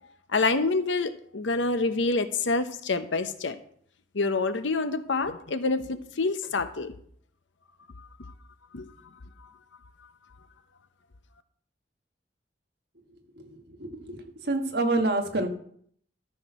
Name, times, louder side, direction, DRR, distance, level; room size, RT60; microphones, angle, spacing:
voice 1, 0.3-3.6 4.1-6.9 8.0-8.1 8.7-8.9, left 3 dB, 85° left, 11 dB, 0.8 m, -27 dB
voice 2, 13.8-14.2 14.4-15.5, right 2 dB, 60° right, 4 dB, 1.4 m, -26 dB
13.0 x 4.4 x 6.2 m, 0.62 s
head